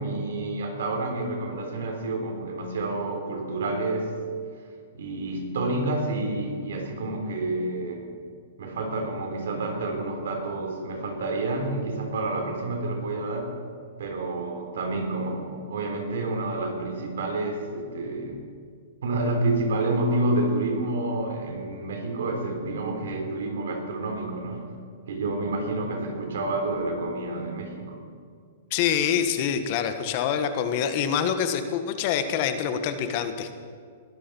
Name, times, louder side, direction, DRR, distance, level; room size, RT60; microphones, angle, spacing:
voice 1, 0.0-4.1 4.9-8.0 8.6-13.5 14.0-18.4 19.0-24.7 25.1-28.0, right 2 dB, 80° right, 3 dB, 3.5 m, -29 dB
voice 2, 28.7-33.5, left 8 dB, 45° left, 9 dB, 1.3 m, -26 dB
20.5 x 12.5 x 4.6 m, 2.2 s
hypercardioid pair, 140°, 0 cm